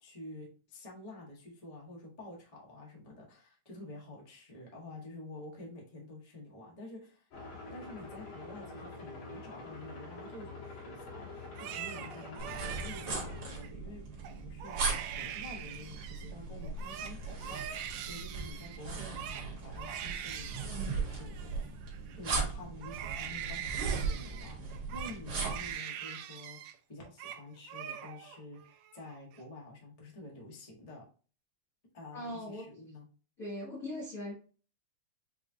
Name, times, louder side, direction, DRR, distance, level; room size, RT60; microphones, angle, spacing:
voice 1, 0.0-7.2 7.7-21.7 22.1-24.6 24.9-26.6 26.9-31.0 31.9-33.1, left 2 dB, 35° left, -3 dB, 0.6 m, -49 dB
sound 1, 7.3-13.5, left 3 dB, 85° left, 3.2 m, -46 dB
Crying sobbing, 11.4-13.7 14.2-14.3 14.6-16.3 16.6-22.4 22.8-26.8 27.0-27.4 27.7-28.4 28.7-29.4, right 10 dB, 80° right, 1.6 m, -43 dB
sound 2, 12.4-25.7, right 4 dB, 50° right, 2.0 m, -38 dB
voice 2, 32.1-32.7 33.4-34.3, left 1 dB, 60° left, -3 dB, 0.8 m, -39 dB
6.6 x 2.4 x 2.7 m, 0.38 s
omnidirectional pair, 3.5 m